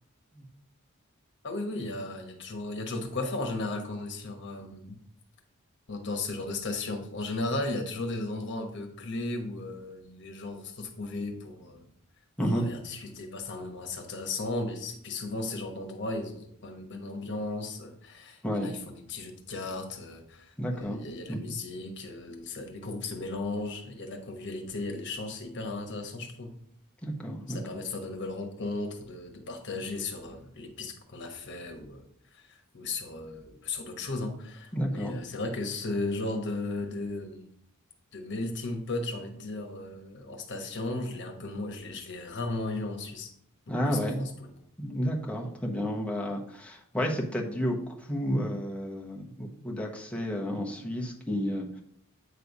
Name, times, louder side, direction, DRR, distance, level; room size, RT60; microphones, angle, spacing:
voice 1, 1.4-5.0 5.9-11.9 12.4-26.5 27.5-32.0 32.3-37.5 38.1-43.3 43.9-44.5, left 2 dB, 55° left, 4 dB, 1.2 m, -36 dB
voice 2, 20.6-21.0 21.3-21.6 27.0-27.8 34.7-35.2 43.7-44.2 44.8-51.8, equal, 5° left, -1 dB, 1.0 m, -31 dB
8.3 x 3.3 x 5.3 m, 0.69 s
head